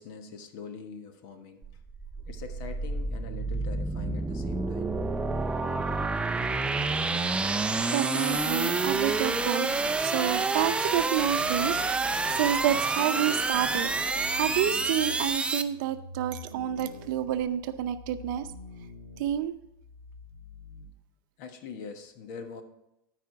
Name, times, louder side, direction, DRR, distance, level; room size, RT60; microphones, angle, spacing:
voice 1, 0.0-1.6 2.3-4.9 21.4-22.6, left 5 dB, 55° left, 7 dB, 1.4 m, -43 dB
sound 1, 1.6-15.6, right 3 dB, 10° right, 0.5 m, -28 dB
sound 2, 5.5-7.4 8.3-10.0 10.9-12.9 13.6-20.8, left 1 dB, 80° left, 2.2 m, -47 dB
voice 2, 7.9-9.7 10.0-13.9 14.3-18.5 19.2-19.5, right 11 dB, 60° right, 11 dB, 0.7 m, -29 dB
13.0 x 4.9 x 4.7 m, 0.87 s
hypercardioid pair, 115°, 12 cm